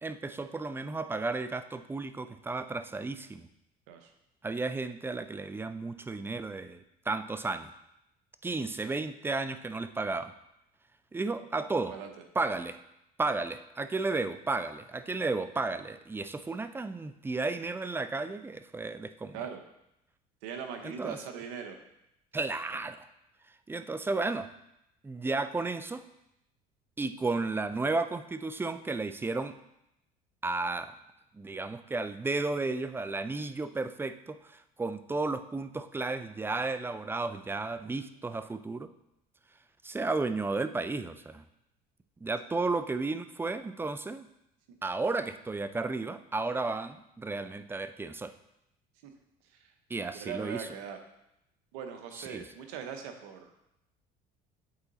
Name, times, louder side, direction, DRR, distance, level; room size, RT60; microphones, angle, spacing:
voice 1, 0.0-3.5 4.4-7.7 8.4-10.3 11.1-12.0 12.4-12.8 13.2-19.5 20.8-21.2 22.3-23.1 23.7-24.5 25.0-26.1 27.0-29.5 30.4-30.9 31.3-38.9 39.8-41.4 42.2-44.3 44.8-48.3 49.9-50.7 52.1-52.5, right 3 dB, 10° right, 11 dB, 0.4 m, -33 dB
voice 2, 20.4-21.8 49.0-49.1 50.1-51.0 51.7-53.5, right 7 dB, 80° right, 6 dB, 0.9 m, -40 dB
8.0 x 4.0 x 4.0 m, 0.83 s
supercardioid pair, 85°, 19 cm